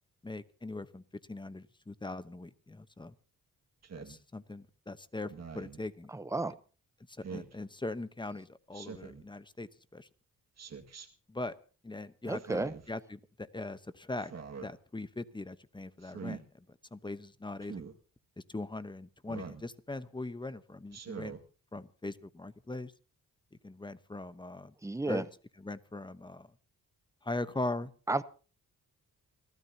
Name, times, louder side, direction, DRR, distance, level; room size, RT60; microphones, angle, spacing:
voice 1, 0.2-1.0 1.3-3.1 4.0-6.1 7.2-10.1 11.3-11.5 11.8-12.6 12.9-14.3 14.6-17.8 18.4-21.3 21.7-22.9 23.6-24.7 25.1-25.2 25.6-26.5 27.2-27.9, left 2 dB, 15° left, 1.0 m, -40 dB
Speech synthesizer, 3.8-4.2 5.3-5.8 7.2-7.5 8.7-9.2 10.6-11.1 12.3-12.9 14.2-14.7 16.0-16.4 17.6-17.9 19.3-19.7 20.9-21.4, right 6 dB, 50° right, 2.0 m, -44 dB
voice 2, 6.1-6.6 12.3-12.8 24.8-25.2 28.1-28.2, right 2 dB, 10° right, 0.8 m, -32 dB
28.0 x 13.0 x 2.9 m
cardioid pair, 85°, 34 cm